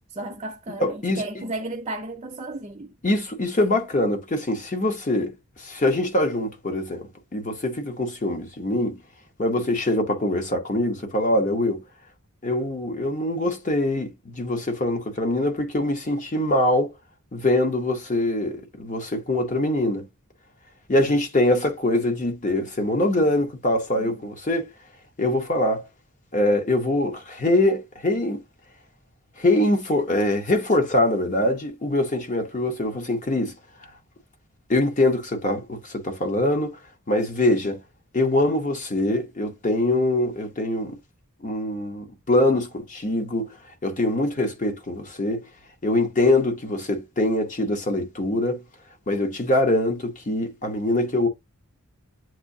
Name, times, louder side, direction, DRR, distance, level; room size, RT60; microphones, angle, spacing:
voice 1, 0.1-2.9 24.0-24.2, right 2 dB, 25° right, 0.6 m, -34 dB
voice 2, 0.8-1.2 3.0-5.3 5.6-9.0 9.4-11.8 12.4-16.9 17.3-20.1 20.9-24.7 25.2-25.8 26.3-28.4 29.4-33.5 34.7-36.8 37.1-37.8 38.1-41.0 41.4-43.5 43.8-45.4 45.8-48.6 49.1-51.3, left 1 dB, 35° left, 0.9 m, -23 dB
7.5 x 2.7 x 2.7 m
head